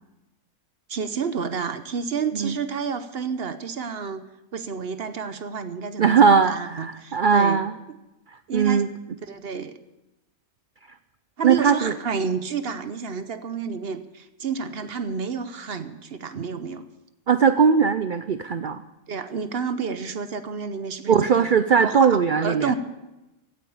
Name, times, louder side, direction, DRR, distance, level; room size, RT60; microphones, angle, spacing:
voice 1, 0.9-4.2 4.5-7.6 8.5-8.9 9.2-9.8 11.4-16.8 19.1-21.5 21.8-22.7, right 6 dB, 50° right, 11 dB, 0.8 m, -30 dB
voice 2, 6.0-7.7 8.5-8.9 11.4-11.9 16.4-16.5 17.3-18.8 21.1-22.7, right 6 dB, 85° right, 11 dB, 0.4 m, -19 dB
16.0 x 8.9 x 7.0 m, 0.98 s
omnidirectional pair, 1.6 m